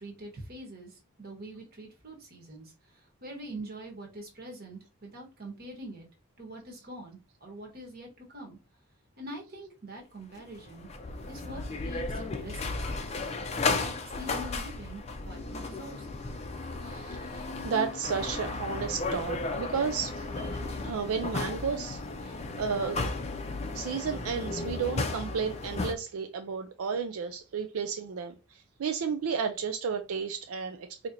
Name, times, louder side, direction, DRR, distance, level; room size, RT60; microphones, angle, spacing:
voice 1, 0.0-6.1 6.4-8.6 9.2-10.9 11.3-13.2 13.7-16.1, right 1 dB, 45° right, 1.1 m, -44 dB
sound 1, 10.4-25.9, left 3 dB, 30° left, 0.4 m, -34 dB
voice 2, 16.8-23.0 23.7-30.9, right 6 dB, 85° right, 0.4 m, -33 dB
4.3 x 2.8 x 2.6 m
head